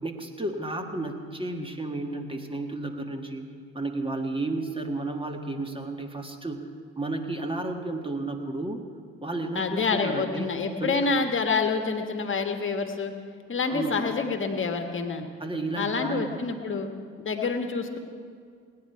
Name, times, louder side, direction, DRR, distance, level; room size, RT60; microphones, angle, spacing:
voice 1, 0.0-3.4 3.7-8.8 9.2-10.5 10.8-11.1 13.7-14.0 15.4-16.2, right 2 dB, 15° right, 4 dB, 1.6 m, -32 dB
voice 2, 9.5-13.1 13.5-15.2 15.8-18.0, left 4 dB, 40° left, 5 dB, 1.5 m, -27 dB
19.5 x 9.7 x 4.7 m, 2.2 s
hypercardioid pair, 55°, 32 cm